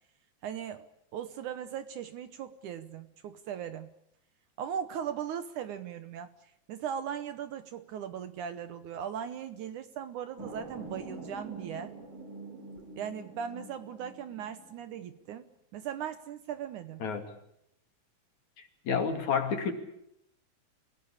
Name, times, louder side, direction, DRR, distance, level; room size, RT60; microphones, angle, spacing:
voice 1, 0.4-0.9 1.1-3.9 4.6-6.3 6.7-11.9 13.0-15.4 15.7-17.0, right 8 dB, 70° right, 11 dB, 2.2 m, -38 dB
sound 1, 10.4-15.4, right 3 dB, 35° right, 4.2 m, -45 dB
voice 2, 18.9-19.7, left 6 dB, 55° left, 6 dB, 3.6 m, -29 dB
28.0 x 17.0 x 8.6 m, 0.77 s
omnidirectional pair, 4.2 m